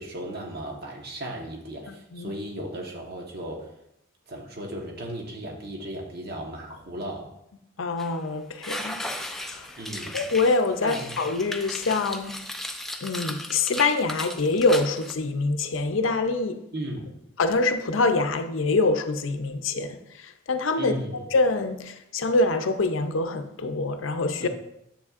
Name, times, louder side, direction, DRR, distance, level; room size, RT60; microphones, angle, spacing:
voice 1, 0.0-3.7 4.3-7.3 9.8-10.2 10.8-11.2 16.7-17.1 20.8-21.2 24.4-24.5, right 1 dB, 50° right, 1.2 m, -36 dB
voice 2, 1.9-2.3 7.8-9.0 9.3-9.7 10.1-12.4 13.0-16.6 17.4-21.0 21.3-24.5, left 3 dB, 75° left, 0.6 m, -25 dB
sound 1, 8.0-8.1 8.6-15.1, left 1 dB, ahead, 0.4 m, -36 dB
9.6 x 7.4 x 2.5 m
head